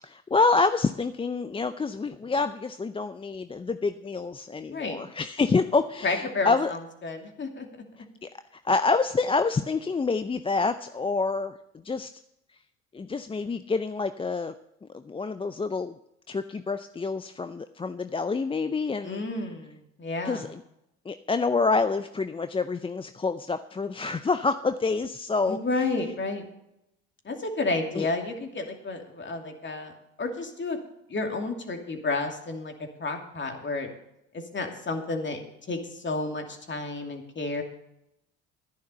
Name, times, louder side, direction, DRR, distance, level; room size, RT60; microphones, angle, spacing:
voice 1, 0.0-6.7 8.2-8.3 8.6-11.6 11.8-12.1 12.9-14.5 14.9-16.0 16.3-19.2 20.2-20.6 21.1-25.6 27.9-28.1, left 4 dB, 15° left, 11 dB, 0.5 m, -27 dB
voice 2, 4.7-5.0 6.0-7.7 19.0-20.5 25.5-26.4 27.2-29.9 30.2-30.8 31.1-32.7 33.0-33.9 34.5-37.6, left 3 dB, 35° left, 4 dB, 2.7 m, -31 dB
11.5 x 10.5 x 5.6 m, 0.82 s
hypercardioid pair, 65°, 34 cm